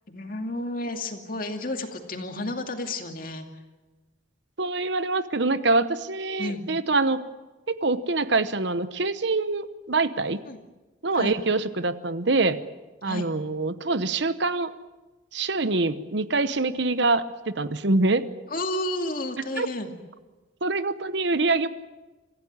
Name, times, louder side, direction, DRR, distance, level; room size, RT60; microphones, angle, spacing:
voice 1, 0.1-3.5 6.4-6.6 10.5-10.6 11.1-11.3 13.0-13.3 18.5-19.9, left 2 dB, 45° left, 5 dB, 2.5 m, -31 dB
voice 2, 4.6-7.3 7.7-10.4 11.0-12.6 13.0-14.7 15.3-18.3 19.6-19.7 20.6-21.7, right 3 dB, 60° right, 13 dB, 1.0 m, -25 dB
26.0 x 15.5 x 9.6 m, 1.2 s
head